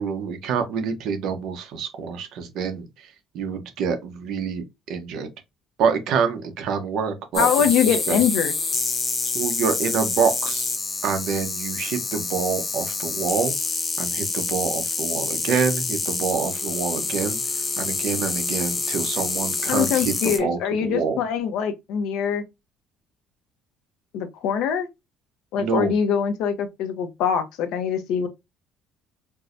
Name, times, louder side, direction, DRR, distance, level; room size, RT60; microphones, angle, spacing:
voice 1, 0.0-5.3 5.8-8.2 9.2-10.7 11.0-13.5 14.0-17.4 17.8-21.2 25.6-25.9, right 6 dB, 60° right, 0.8 m, -27 dB
sound 1, 7.3-20.4, left 3 dB, 20° left, 0.6 m, -27 dB
voice 2, 7.4-8.5 19.7-22.4 24.1-24.9 25.5-28.3, left 7 dB, 75° left, 0.6 m, -23 dB
4.5 x 2.2 x 2.5 m
cardioid pair, 170°, 0 cm